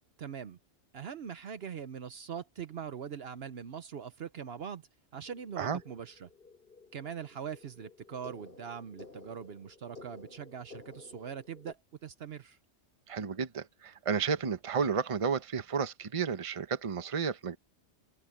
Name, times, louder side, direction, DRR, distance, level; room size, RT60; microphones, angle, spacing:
voice 1, 0.2-0.6 0.9-6.3 6.9-12.6, right 7 dB, 65° right, 1.0 m, -42 dB
sound 1, 5.3-11.7, left 3 dB, 50° left, 5.1 m, -53 dB
voice 2, 13.1-17.6, right 6 dB, 30° right, 0.9 m, -32 dB
open air
omnidirectional pair, 1.2 m